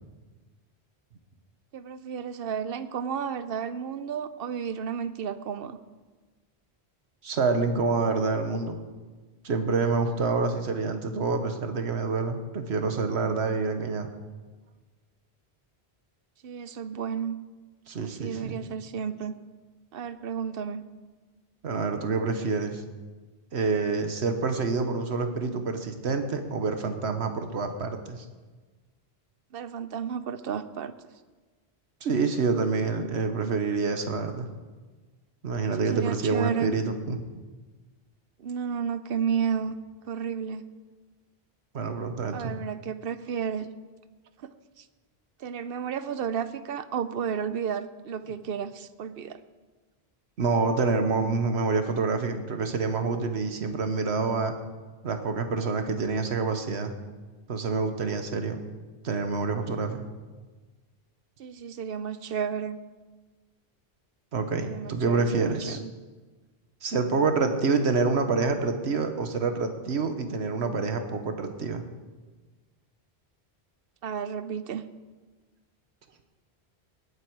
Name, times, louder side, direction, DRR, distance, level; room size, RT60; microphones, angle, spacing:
voice 1, 1.7-5.8 16.4-17.4 18.0-19.4 19.9-20.8 29.5-30.9 35.8-36.7 38.4-39.7 40.1-40.6 42.3-43.7 44.4-44.5 44.8-44.9 45.4-49.4 61.4-62.8 64.6-65.9 74.0-74.8, right 7 dB, 65° right, 13 dB, 0.8 m, -32 dB
voice 2, 7.2-8.8 9.4-14.1 17.9-18.6 21.6-22.8 23.5-28.2 32.0-34.5 35.4-37.2 41.7-42.5 50.4-54.5 55.0-56.9 57.5-58.6 59.0-60.1 64.3-65.8 66.8-71.8, right 4 dB, 85° right, 7 dB, 1.4 m, -27 dB
19.0 x 8.4 x 4.7 m, 1.3 s
omnidirectional pair, 1.1 m